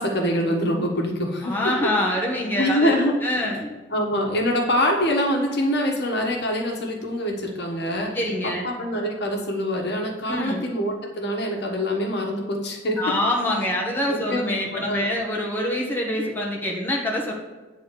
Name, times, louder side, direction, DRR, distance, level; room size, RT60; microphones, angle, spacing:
voice 1, 0.0-1.6 2.6-3.1 3.9-8.2 8.6-13.0 14.1-15.1, equal, 60° left, 0 dB, 1.4 m, -25 dB
voice 2, 1.4-3.7 8.1-8.7 10.3-10.6 13.0-17.3, left 1 dB, 10° left, -3 dB, 1.3 m, -25 dB
9.2 x 3.9 x 6.7 m, 1.3 s
head